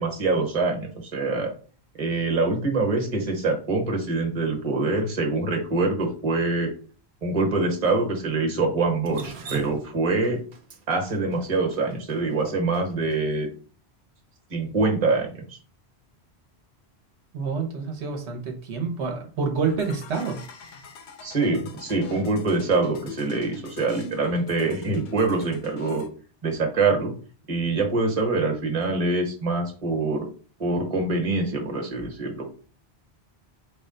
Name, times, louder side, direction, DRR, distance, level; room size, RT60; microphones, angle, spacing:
voice 1, 0.0-1.5 2.0-6.7 7.2-10.4 10.9-13.5 14.5-15.6 21.2-26.0 26.4-27.1 27.5-30.3 30.6-32.5, right 3 dB, 35° right, 2 dB, 1.0 m, -25 dB
Drip, 9.1-13.2, right 4 dB, 55° right, 0.8 m, -39 dB
voice 2, 17.3-20.4, right 5 dB, 80° right, 2 dB, 1.1 m, -28 dB
sound 1, 19.7-26.1, left 4 dB, 85° left, 0.9 m, -43 dB
4.8 x 2.1 x 3.7 m, 0.40 s
omnidirectional pair, 1.1 m